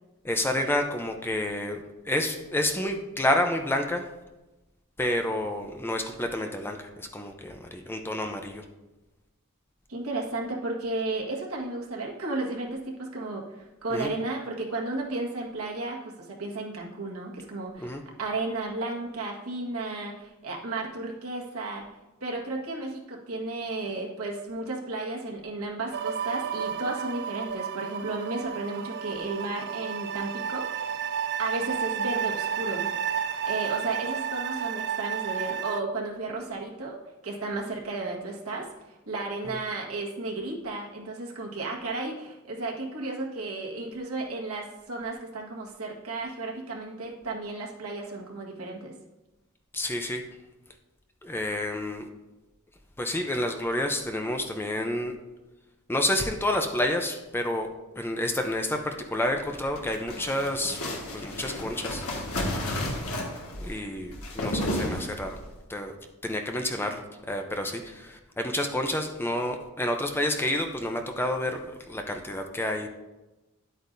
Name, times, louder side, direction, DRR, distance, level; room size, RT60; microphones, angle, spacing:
voice 1, 0.2-4.0 5.0-8.6 13.9-14.1 17.8-18.0 39.5-39.6 49.7-50.2 51.2-52.1 53.0-55.2 55.9-57.7 58.0-60.8 61.1-62.0 63.6-65.4 65.7-65.9 66.2-67.0 67.3-72.9, left 1 dB, 10° left, 4 dB, 0.6 m, -29 dB
voice 2, 9.9-21.8 22.2-31.1 31.4-32.9 33.4-37.0 37.2-48.9, right 2 dB, 85° right, -2 dB, 1.6 m, -33 dB
sound 1, 25.9-35.8, right 8 dB, 50° right, 0.4 m, -31 dB
sound 2, 59.4-65.5, left 1 dB, 85° left, 1.6 m, -32 dB
10.0 x 8.3 x 2.6 m, 1.0 s
head